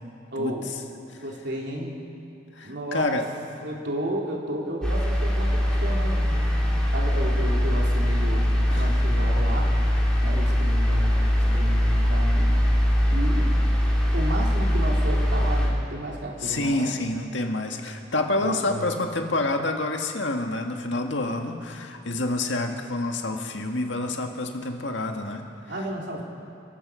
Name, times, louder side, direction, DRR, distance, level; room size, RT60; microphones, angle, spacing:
voice 1, 0.3-0.7 1.2-2.0 2.6-3.2 3.6-6.4 6.9-9.7 10.2-12.5 13.1-13.5 14.1-16.9 18.4-19.0 25.7-26.2, right 1 dB, 60° right, -2 dB, 3.6 m, -32 dB
voice 2, 2.5-3.2 8.7-9.0 16.4-25.4, left 2 dB, 70° left, 3 dB, 1.8 m, -28 dB
sound 1, 4.8-15.7, equal, 5° left, 3.6 m, -22 dB
29.0 x 15.0 x 6.4 m, 2.5 s
head